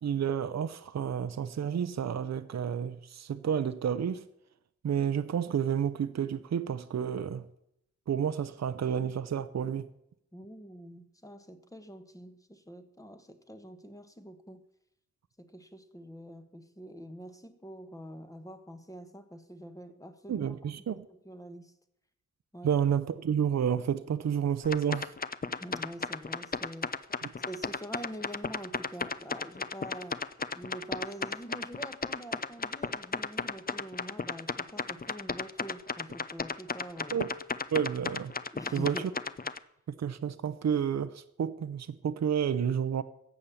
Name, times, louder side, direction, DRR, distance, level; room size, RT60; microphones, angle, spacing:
voice 1, 0.0-4.2 4.8-7.5 8.1-9.8 20.3-21.1 22.6-25.1 27.2-27.3 37.1-37.3 37.7-38.3 38.7-39.0 39.9-43.0, right 8 dB, 65° right, 0.7 m, -30 dB
voice 2, 10.3-14.6 15.4-21.7 22.5-22.7 25.5-26.9 27.5-30.2 30.5-37.2 38.5-39.1, equal, 10° left, 1.3 m, -45 dB
sound 1, 24.6-39.6, left 5 dB, 30° left, 0.6 m, -34 dB
14.5 x 8.5 x 7.1 m
wide cardioid pair, 105°, 29 cm